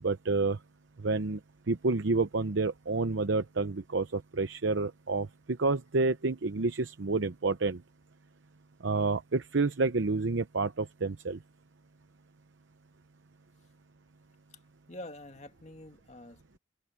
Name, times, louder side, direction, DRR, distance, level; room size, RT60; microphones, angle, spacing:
voice 1, 0.0-0.6 1.0-1.4 1.7-7.8 8.8-11.4, right 3 dB, 75° right, 0.8 m, -29 dB
voice 2, 14.9-16.6, left 1 dB, 35° left, 2.2 m, -46 dB
head